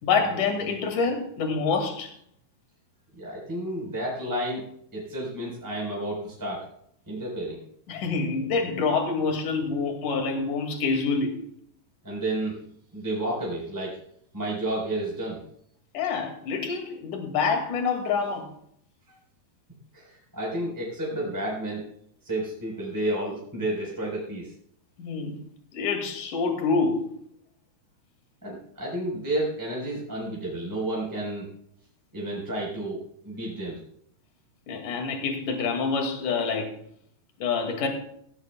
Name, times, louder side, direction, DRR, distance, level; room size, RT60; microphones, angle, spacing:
voice 1, 0.0-2.1 7.9-11.4 15.9-18.5 25.0-25.4 25.7-27.1 34.7-36.7 37.4-37.9, left 4 dB, 50° left, 3.5 m, -26 dB
voice 2, 3.2-4.6 4.9-6.6 7.1-7.6 12.0-12.6 12.9-14.0 14.3-15.4 19.1-19.2 19.9-21.8 22.2-24.5 28.4-31.5 32.1-33.8, right 1 dB, 5° right, 4.2 m, -31 dB
17.0 x 16.5 x 2.4 m
omnidirectional pair, 4.9 m